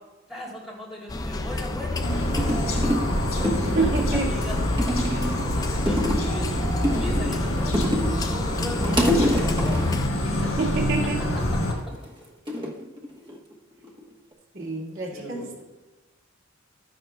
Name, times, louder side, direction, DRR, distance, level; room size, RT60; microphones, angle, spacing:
voice 1, 0.3-2.1 2.3-6.7 7.0-7.8 8.0-10.6 15.1-15.6, left 1 dB, ahead, -5 dB, 2.8 m, -38 dB
sound 1, 1.1-10.1, left 2 dB, 20° left, 0.3 m, -30 dB
sound 2, 2.0-11.7, equal, 75° left, 3.0 m, -27 dB
sound 3, 2.4-3.1 3.4-4.2 4.8-5.5 5.9-6.4 6.8-8.2 8.6-10.0 11.6-12.0 12.5-13.5 13.8-14.3, equal, 25° right, 1.1 m, -26 dB
voice 2, 3.7-4.3 10.6-11.2 14.5-15.6, right 4 dB, 80° right, -4 dB, 2.1 m, -27 dB
13.0 x 10.0 x 2.3 m, 1.1 s
head